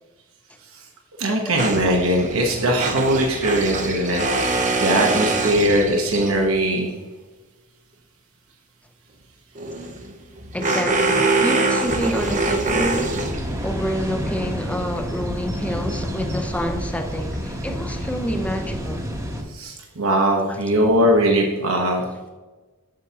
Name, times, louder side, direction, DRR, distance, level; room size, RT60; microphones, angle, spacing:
voice 1, 1.2-4.2 4.5-6.9 19.5-22.0, right 1 dB, 70° right, 1 dB, 1.1 m, -20 dB
sound 1, 1.6-6.5 9.5-13.8, right 3 dB, 35° right, 0.7 m, -24 dB
voice 2, 10.5-13.1 13.6-19.0 20.5-20.6, equal, 5° left, 6 dB, 0.7 m, -28 dB
sound 2, 11.8-19.4, equal, 15° right, 1.1 m, -29 dB
7.6 x 7.2 x 2.8 m, 1.2 s
head